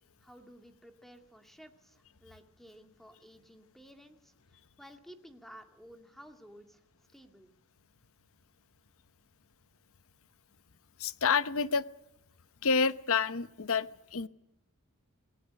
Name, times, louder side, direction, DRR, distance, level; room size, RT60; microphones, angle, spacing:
voice 1, 0.2-6.8 7.1-7.5, equal, ahead, 6 dB, 2.2 m, -54 dB
voice 2, 11.0-11.8 12.6-14.3, left 5 dB, 65° left, 15 dB, 0.9 m, -28 dB
26.5 x 18.5 x 6.4 m, 0.83 s
head